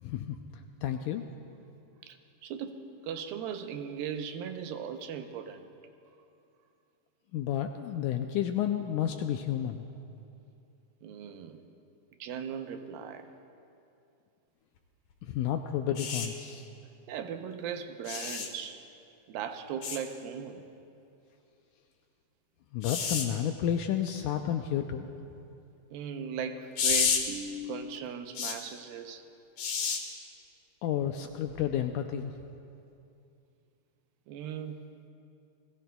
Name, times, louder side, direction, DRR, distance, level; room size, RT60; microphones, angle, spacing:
voice 1, 0.0-0.4 0.8-1.2 7.3-9.8 15.2-16.7 22.7-25.1 30.8-32.3, left 10 dB, 80° left, 6 dB, 1.8 m, -31 dB
voice 2, 2.4-5.7 11.0-11.7 12.2-13.3 17.1-18.8 19.3-20.6 25.9-29.2 34.3-34.8, right 7 dB, 90° right, 7 dB, 2.6 m, -38 dB
sound 1, 16.0-16.3 18.1-18.5 19.8-20.0 22.8-23.3 26.8-27.2 28.4-28.6 29.6-30.0 31.5-31.6, left 6 dB, 60° left, 2.2 m, -29 dB
29.5 x 20.0 x 2.3 m, 2.6 s
omnidirectional pair, 4.1 m